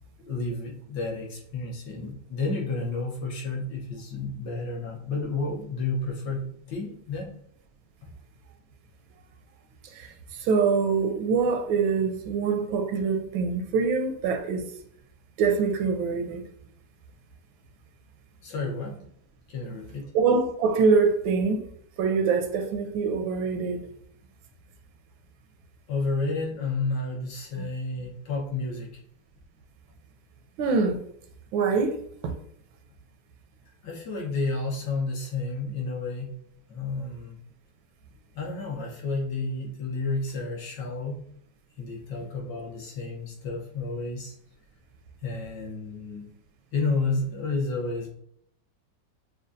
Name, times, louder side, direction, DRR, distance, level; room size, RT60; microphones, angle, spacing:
voice 1, 0.2-7.3 18.4-19.0 19.5-20.1 25.9-28.9 33.8-36.4 36.7-37.4 38.3-41.2 41.8-44.3 45.2-46.3 46.7-48.1, left 3 dB, 65° left, 1.6 m, -31 dB
voice 2, 9.8-14.6 15.4-16.4 20.1-21.6 22.0-23.8 27.6-27.7 30.6-31.0 31.5-32.4, right 5 dB, 85° right, 1.4 m, -24 dB
6.0 x 2.3 x 2.6 m
omnidirectional pair, 2.1 m